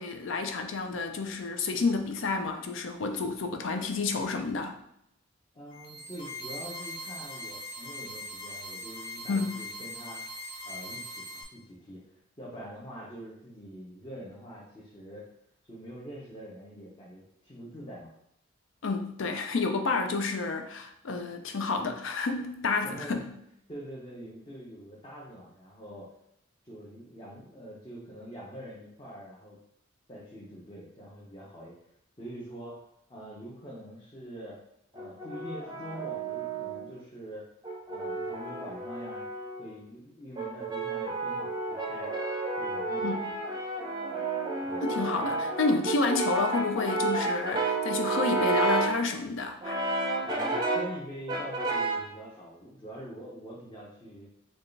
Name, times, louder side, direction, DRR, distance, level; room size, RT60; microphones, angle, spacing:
voice 1, 0.0-4.8 9.3-9.5 18.8-23.3 43.0-43.2 44.8-49.8, left 3 dB, 70° left, 6 dB, 0.5 m, -30 dB
voice 2, 5.5-10.2 10.6-15.3 15.7-18.1 22.8-23.2 23.7-26.1 26.6-29.6 30.1-31.8 32.2-32.8 33.1-34.6 34.9-37.5 37.9-39.3 39.6-42.1 42.6-43.4 44.6-44.9 50.2-54.3, equal, 25° left, -6 dB, 0.7 m, -44 dB
sound 1, 5.7-11.4, left 1 dB, 40° left, 1.1 m, -41 dB
Brass instrument, 35.0-36.9 37.6-39.7 40.4-49.0 49.6-51.0 51.3-52.1, right 2 dB, 20° right, 0.5 m, -31 dB
4.6 x 2.3 x 3.2 m, 0.77 s
head